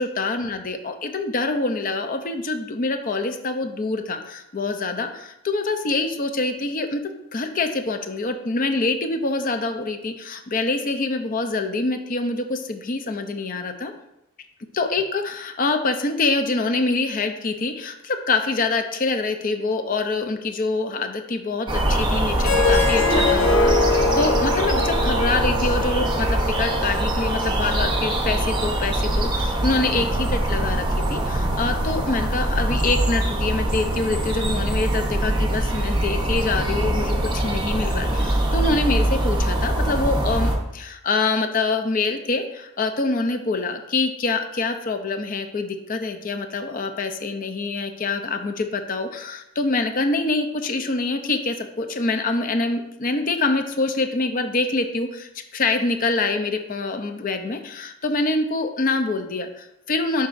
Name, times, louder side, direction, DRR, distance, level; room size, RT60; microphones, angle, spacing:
voice 1, 0.0-7.0 7.3-13.9 14.7-60.3, left 3 dB, 40° left, 6 dB, 0.6 m, -25 dB
sound 1, 21.7-40.6, right 1 dB, 20° right, 0.8 m, -23 dB
Harp, 22.4-27.5, left 3 dB, 75° left, 0.9 m, -23 dB
11.0 x 4.0 x 2.6 m, 0.85 s
head